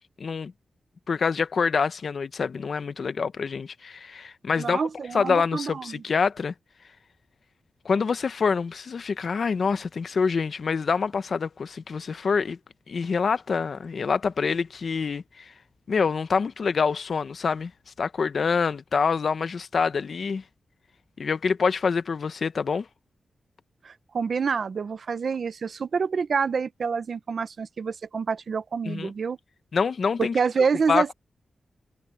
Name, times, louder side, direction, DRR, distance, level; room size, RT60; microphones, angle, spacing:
voice 1, 0.2-0.5 1.1-4.8 5.1-6.5 7.8-12.6 12.9-15.5 15.9-17.7 18.0-20.4 21.2-22.9 28.9-29.1 29.7-30.3 30.9-31.1, left 5 dB, 55° left, 0.8 m, -26 dB
voice 2, 4.6-6.0 23.8-29.4 30.2-31.1, right 5 dB, 60° right, 0.9 m, -27 dB
wide cardioid pair, 140°, 0 cm